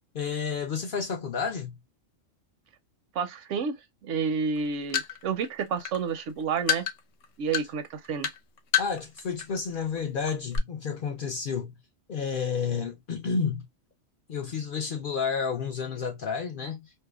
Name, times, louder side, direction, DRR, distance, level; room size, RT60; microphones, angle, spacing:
voice 1, 0.1-1.8 8.8-11.8 12.1-13.7 14.3-16.9, left 6 dB, 60° left, 0.6 m, -31 dB
voice 2, 3.1-3.8 4.0-6.9 7.4-8.3, right 6 dB, 75° right, 0.9 m, -30 dB
sound 1, 4.6-9.5 9.8-10.0 10.3-10.6, left 8 dB, 80° left, 0.9 m, -29 dB
2.7 x 2.1 x 2.2 m
omnidirectional pair, 1.3 m